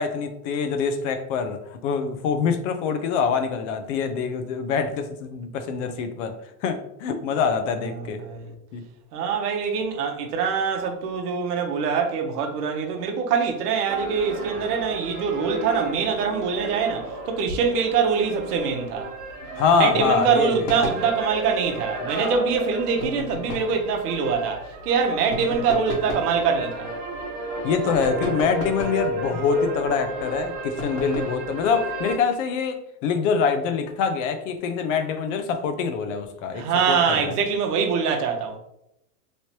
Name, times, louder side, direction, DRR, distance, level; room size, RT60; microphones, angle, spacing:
voice 1, 0.0-6.3 6.6-8.2 8.7-8.8 19.6-20.7 27.6-37.3, left 5 dB, 55° left, 0.6 m, -25 dB
voice 2, 8.2-8.5 9.1-19.1 19.8-26.9 36.5-38.6, right 6 dB, 75° right, 0.9 m, -24 dB
sound 1, 13.9-32.2, right 2 dB, 40° right, 1.1 m, -33 dB
sound 2, 20.6-21.1 23.0-23.8 25.3-26.3 28.0-29.1 30.8-31.4, left 2 dB, 75° left, 1.3 m, -33 dB
3.1 x 3.0 x 2.8 m
supercardioid pair, 130°, 47 cm